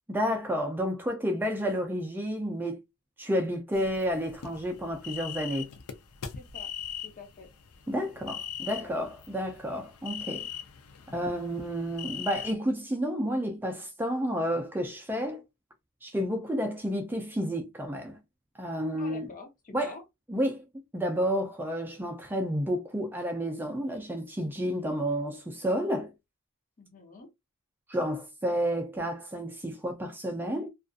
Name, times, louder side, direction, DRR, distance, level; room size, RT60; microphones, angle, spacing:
voice 1, 0.1-2.8 3.2-5.7 7.9-10.5 11.1-15.4 16.0-18.2 18.6-19.3 19.7-19.9 20.3-20.6 20.9-26.1 27.9-30.7, equal, 10° right, 0.4 m, -30 dB
sound 1, 3.7-12.5, left 8 dB, 90° left, 0.5 m, -41 dB
voice 2, 6.4-6.7 7.0-7.5 8.0-8.2 8.6-9.0 19.0-20.0 26.8-27.3, left 3 dB, 40° left, 0.7 m, -48 dB
2.6 x 2.4 x 2.3 m
head